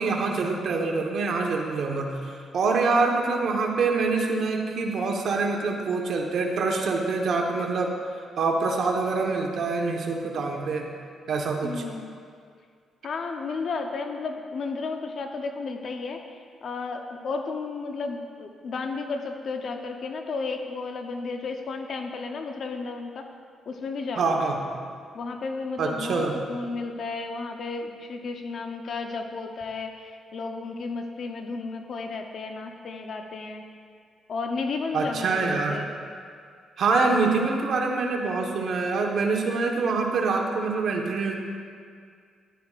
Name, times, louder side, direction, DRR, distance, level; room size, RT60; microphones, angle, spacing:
voice 1, 0.0-7.9 8.4-10.9 11.3-11.8 24.2-24.6 25.8-26.3 34.9-35.8 36.8-41.4, right 4 dB, 65° right, 1 dB, 1.2 m, -25 dB
voice 2, 2.7-3.2 11.6-12.1 13.0-23.3 23.7-24.4 25.1-33.6 34.3-35.9, left 4 dB, 60° left, 4 dB, 0.8 m, -33 dB
14.0 x 11.5 x 2.5 m, 2.1 s
cardioid pair, 75°, 0 cm